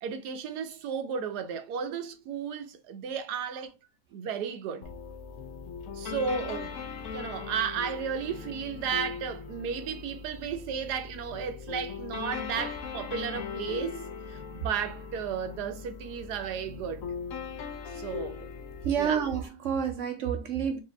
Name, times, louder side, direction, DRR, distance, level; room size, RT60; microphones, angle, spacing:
voice 1, 0.0-3.7 4.1-4.9 5.9-6.8 7.1-17.1 17.9-18.5 19.0-19.2, right 7 dB, 80° right, 1.2 m, -34 dB
sound 1, 4.8-19.4, left 6 dB, 65° left, 0.9 m, -39 dB
voice 2, 18.8-20.8, right 8 dB, 65° right, 0.8 m, -29 dB
4.8 x 2.6 x 3.3 m
omnidirectional pair, 1.7 m